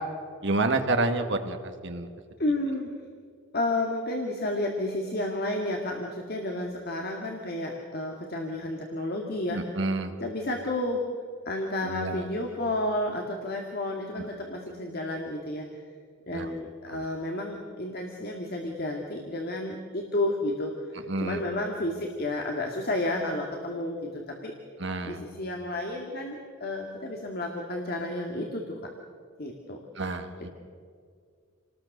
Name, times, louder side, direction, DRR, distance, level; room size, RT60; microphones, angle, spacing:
voice 1, 0.4-1.6 1.8-2.1 9.5-10.1 11.9-12.2 16.3-16.5 21.1-21.4 24.8-25.2 30.0-30.5, right 2 dB, 55° right, 6 dB, 1.8 m, -28 dB
voice 2, 2.4-3.0 3.5-11.0 11.5-15.7 16.3-24.5 25.0-28.9 29.4-29.8 30.1-30.5, left 1 dB, 45° left, 1 dB, 2.1 m, -31 dB
28.0 x 19.5 x 6.7 m, 2.1 s
head